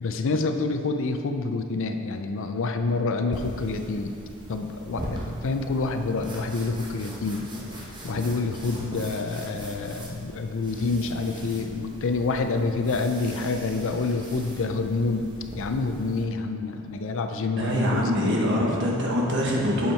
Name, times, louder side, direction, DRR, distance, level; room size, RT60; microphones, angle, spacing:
voice 1, 0.0-4.2 4.5-7.5 7.8-15.3 15.6-18.3, left 3 dB, 60° left, 6 dB, 0.5 m, -27 dB
sound 1, 3.3-16.2, equal, 20° right, 1.1 m, -40 dB
voice 2, 17.6-19.9, equal, 55° right, -2 dB, 1.3 m, -24 dB
7.2 x 5.7 x 4.4 m, 2.4 s
head